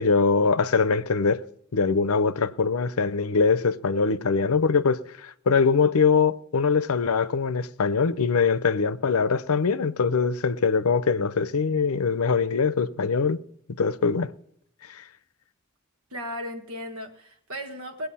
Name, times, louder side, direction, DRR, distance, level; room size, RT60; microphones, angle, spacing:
voice 1, 0.0-1.4 1.7-13.4 13.8-14.3 14.9-15.0, left 5 dB, 80° left, 0.6 m, -23 dB
voice 2, 16.1-18.1, equal, 75° right, 1.6 m, -35 dB
20.0 x 8.0 x 5.6 m
head